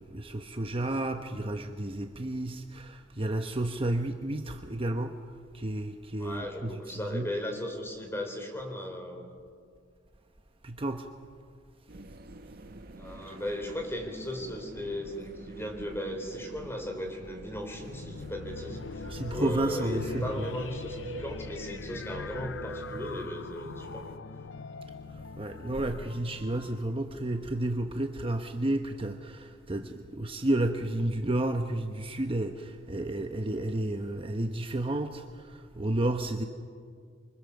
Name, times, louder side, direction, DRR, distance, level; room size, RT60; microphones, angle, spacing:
voice 1, 0.0-5.2 5.5-7.3 10.6-11.1 13.3-13.4 19.1-20.5 25.1-36.4, right 1 dB, 30° right, 6 dB, 0.9 m, -32 dB
voice 2, 6.2-9.3 13.0-24.2, left 1 dB, 15° left, 3 dB, 4.1 m, -37 dB
sound 1, 11.9-24.2, right 2 dB, 55° right, 1.0 m, -46 dB
sound 2, 17.7-27.9, left 4 dB, 75° left, 0.5 m, -42 dB
26.5 x 24.0 x 7.1 m, 2.1 s
head